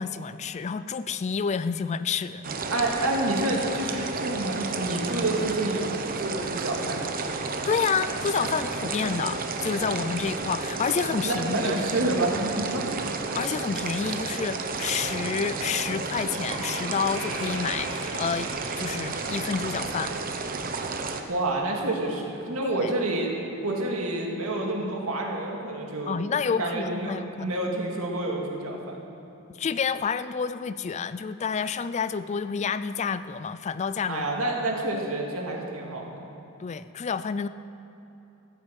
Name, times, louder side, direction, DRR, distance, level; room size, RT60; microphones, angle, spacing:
voice 1, 0.0-2.4 7.6-11.8 13.3-20.1 22.6-22.9 26.1-27.5 29.6-34.3 36.6-37.5, left 6 dB, 30° left, 14 dB, 0.3 m, -29 dB
sound 1, 2.4-21.2, right 3 dB, 40° right, 0.9 m, -32 dB
voice 2, 2.7-7.1 11.2-13.1 21.3-23.3 23.6-26.2 26.6-29.0 34.1-36.3, right 2 dB, 85° right, 0 dB, 2.2 m, -28 dB
Door, 16.0-16.1 16.5-20.0 20.3-20.6 21.3-21.4, right 1 dB, 65° right, 3.7 m, -40 dB
14.5 x 8.8 x 7.5 m, 2.9 s
head